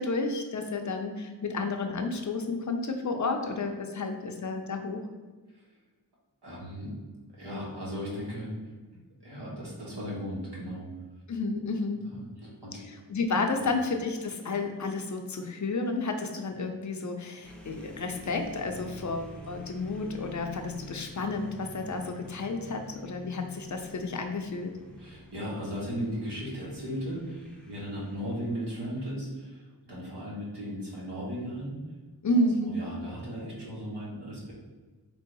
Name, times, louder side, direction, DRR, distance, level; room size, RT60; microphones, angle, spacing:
voice 1, 0.0-5.1 11.3-12.0 13.1-24.7 32.2-32.8, left 3 dB, 45° left, 4 dB, 0.6 m, -31 dB
voice 2, 6.4-6.9 7.3-8.5 9.2-10.9 12.1-12.8 13.6-13.7 25.0-31.8 32.3-34.5, equal, 75° right, -5 dB, 1.4 m, -37 dB
sound 1, 17.4-29.2, right 1 dB, 5° left, 0.6 m, -48 dB
3.4 x 2.7 x 4.0 m, 1.3 s
wide cardioid pair, 50°, 41 cm